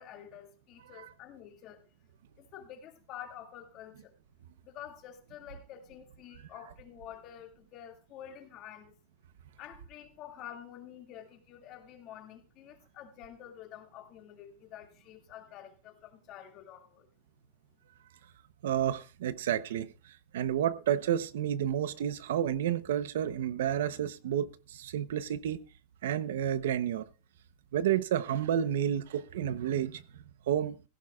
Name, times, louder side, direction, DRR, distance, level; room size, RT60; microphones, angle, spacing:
voice 1, 0.0-1.8 2.4-4.1 4.6-9.0 9.6-17.1, left 10 dB, 35° left, 2.2 m, -48 dB
voice 2, 18.6-25.6 26.0-27.0 27.7-30.0 30.5-30.8, right 10 dB, 85° right, 0.9 m, -30 dB
16.0 x 15.5 x 2.4 m
supercardioid pair, 160°, 0 cm